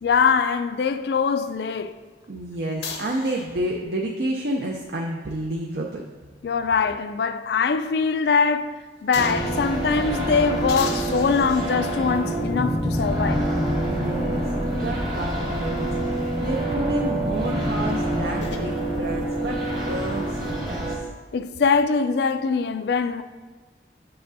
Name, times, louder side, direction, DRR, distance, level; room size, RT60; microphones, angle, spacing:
voice 1, 0.0-1.9 6.4-8.7 9.0-13.4 21.3-23.2, left 5 dB, 65° left, 0.4 m, -22 dB
voice 2, 2.3-6.0 13.9-19.6 19.9-21.1, right 1 dB, 60° right, 0.5 m, -30 dB
sound 1, 2.8-3.8 5.5-7.1 7.5-7.6 9.1-9.6 10.7-12.2 13.1-13.2 17.8-18.7, left 4 dB, 85° left, 0.8 m, -38 dB
sound 2, 9.2-21.0, right 1 dB, 20° right, 1.0 m, -26 dB
7.6 x 6.9 x 2.7 m
head